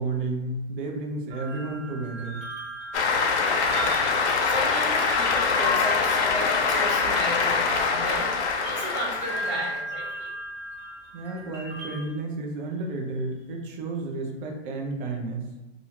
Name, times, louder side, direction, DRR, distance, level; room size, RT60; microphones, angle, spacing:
voice 1, 0.0-2.4 11.1-15.5, right 3 dB, 50° right, 1 dB, 0.7 m, -32 dB
sound 1, 1.3-12.1, equal, 20° right, 1.3 m, -38 dB
Cheering / Applause, 2.9-9.8, left 4 dB, 80° left, 0.6 m, -24 dB
voice 2, 3.7-8.3 8.7-10.3, right 1 dB, 75° right, -8 dB, 1.5 m, -35 dB
2.7 x 2.4 x 2.8 m, 0.95 s
hypercardioid pair, 135°, 33 cm